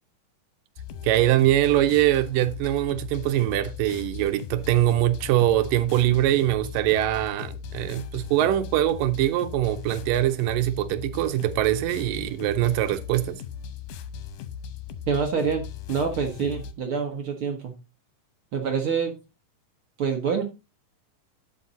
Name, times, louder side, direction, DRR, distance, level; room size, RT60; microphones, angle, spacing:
sound 1, 0.8-16.7, left 7 dB, 75° left, 2.3 m, -38 dB
voice 1, 1.0-13.4, right 14 dB, 80° right, 2.2 m, -23 dB
voice 2, 15.1-17.7 18.5-19.1 20.0-20.4, right 6 dB, 60° right, 1.5 m, -26 dB
11.5 x 5.3 x 4.0 m
omnidirectional pair, 3.9 m